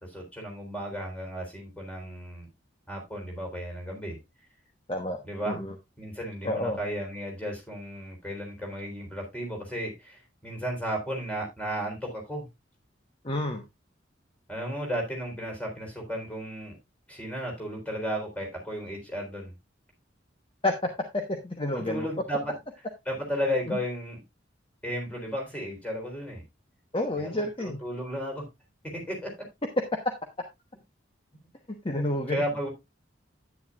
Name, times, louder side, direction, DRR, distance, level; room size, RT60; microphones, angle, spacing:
voice 1, 0.0-2.5 2.9-4.2 5.2-5.6 6.0-12.5 14.5-16.8 17.1-19.5 21.7-22.5 23.1-24.2 24.8-26.4 27.2-28.5 28.9-29.3 32.3-32.7, equal, 5° left, 3.9 m, -34 dB
voice 2, 6.4-6.8 13.2-13.6 20.6-20.7 21.1-22.1 23.7-23.8 26.9-27.8 31.7-32.4, left 1 dB, 30° left, 1.1 m, -29 dB
10.5 x 9.5 x 2.4 m
head